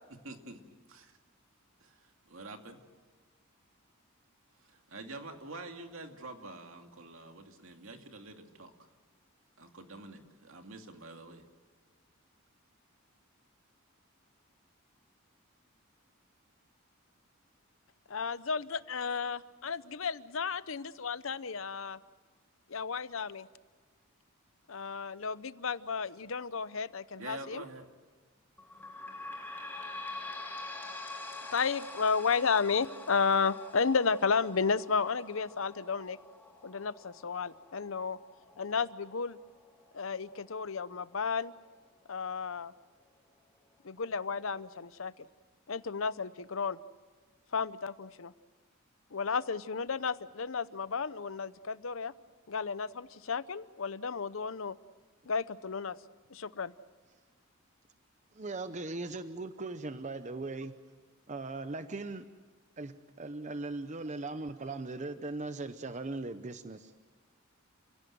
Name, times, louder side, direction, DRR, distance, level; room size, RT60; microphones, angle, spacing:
voice 1, 0.2-0.6 0.9-1.2 1.8-2.8 4.6-8.7 9.6-11.4 27.2-27.8, right 2 dB, 70° right, 5 dB, 2.5 m, -47 dB
voice 2, 18.1-22.0 22.7-23.5 24.7-27.6 31.5-36.2 36.6-38.2 38.6-39.4 39.9-41.5 42.1-42.7 43.8-45.1 45.7-46.8 47.5-48.3 49.1-52.1 52.5-54.8 55.3-56.0 56.3-56.7, left 5 dB, 70° left, 16 dB, 0.8 m, -33 dB
sound 1, 28.6-41.7 42.3-42.4 42.7-42.8 43.6-43.7, left 2 dB, 10° left, 2.2 m, -46 dB
voice 3, 58.3-60.8 61.3-62.3 62.8-66.9, right 3 dB, 35° right, 10 dB, 0.8 m, -39 dB
29.5 x 17.0 x 7.9 m, 1.4 s
head